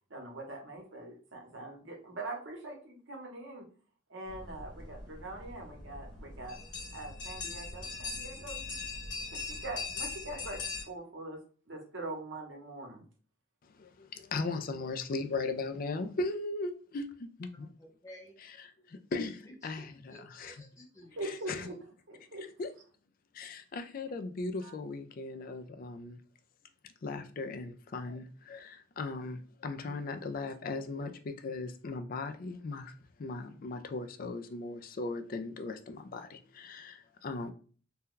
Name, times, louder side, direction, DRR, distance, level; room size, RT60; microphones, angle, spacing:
voice 1, 0.1-3.6 4.1-6.6 6.9-8.8 9.3-11.4 11.7-13.0 21.2-21.7 22.1-22.4 24.6-24.7, right 2 dB, 65° right, 0.9 m, -43 dB
sound 1, 4.3-10.8, left 4 dB, 60° left, 1.3 m, -41 dB
voice 2, 13.7-17.7 18.9-20.5 21.2-21.7 22.6-22.7 23.3-26.2 26.8-32.9 33.2-37.5, left 3 dB, 45° left, 0.3 m, -38 dB
voice 3, 17.8-18.4 19.7-21.7, equal, 15° left, 0.9 m, -54 dB
2.7 x 2.2 x 3.7 m
head